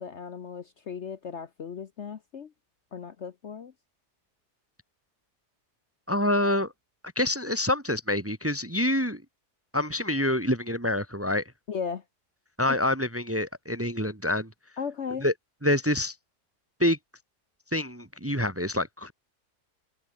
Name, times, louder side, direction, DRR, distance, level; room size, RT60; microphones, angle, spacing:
voice 1, 0.0-2.5 2.9-3.7 11.7-12.0 14.8-15.2, left 6 dB, 50° left, 1.1 m, -36 dB
voice 2, 6.1-6.7 7.2-9.2 9.7-11.4 12.6-14.5 15.2-15.3 15.6-16.1 16.8-17.0 17.7-19.1, left 1 dB, 10° right, 1.1 m, -26 dB
omnidirectional pair, 1.7 m